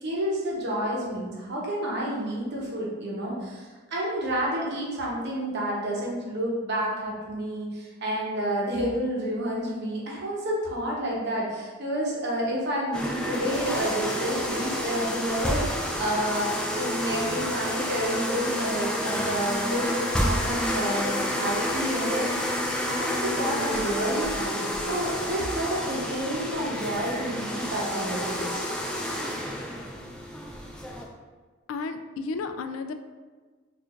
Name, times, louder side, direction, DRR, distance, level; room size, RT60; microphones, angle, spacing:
voice 1, 0.0-22.6 22.9-28.6, equal, 60° right, -3 dB, 0.9 m, -30 dB
sound 1, 12.9-31.0, equal, 5° left, 0.4 m, -29 dB
voice 2, 31.7-32.9, left 4 dB, 80° left, 8 dB, 0.3 m, -32 dB
4.4 x 2.5 x 2.5 m, 1.4 s
head